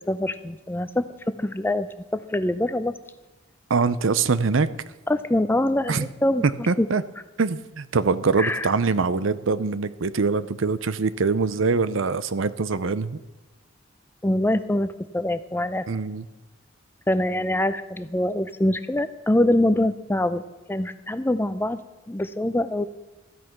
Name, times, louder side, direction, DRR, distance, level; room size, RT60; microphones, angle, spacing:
voice 1, 0.1-1.1 1.4-3.0 5.1-6.9 8.4-8.7 14.2-15.9 17.1-20.4 20.7-21.8 22.1-22.9, left 1 dB, 10° left, 13 dB, 0.5 m, -24 dB
voice 2, 3.7-4.7 5.9-6.1 6.7-7.0 7.4-13.2 15.9-16.2, right 4 dB, 70° right, 15 dB, 0.6 m, -23 dB
13.5 x 9.4 x 5.9 m, 1.2 s
head